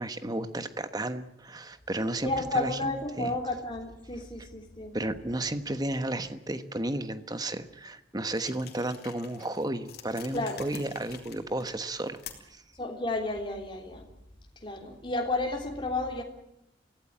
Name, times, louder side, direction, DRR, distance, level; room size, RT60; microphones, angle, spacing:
voice 1, 0.0-2.9 3.2-3.4 4.9-12.2 12.5-12.6, right 1 dB, 20° right, 10 dB, 1.2 m, -33 dB
voice 2, 2.2-5.0 10.3-10.7 12.8-14.1 14.6-16.2, left 2 dB, 25° left, 2 dB, 3.4 m, -32 dB
sound 1, 8.3-12.6, left 8 dB, 55° left, 3.2 m, -48 dB
24.0 x 16.5 x 8.9 m, 0.85 s
head